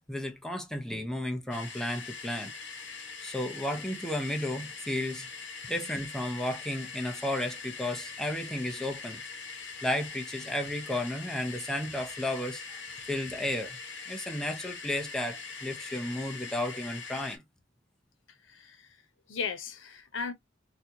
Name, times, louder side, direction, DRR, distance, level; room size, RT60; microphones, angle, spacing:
voice 1, 0.1-2.5 3.2-5.3 5.7-9.2 9.8-12.6 13.1-13.8 14.1-17.4, left 1 dB, 5° left, 0.7 m, -33 dB
sound 1, 1.5-17.4, left 4 dB, 70° left, 1.2 m, -42 dB
voice 2, 18.5-19.0 19.3-20.3, left 5 dB, 90° left, 0.8 m, -36 dB
4.2 x 2.3 x 2.8 m
head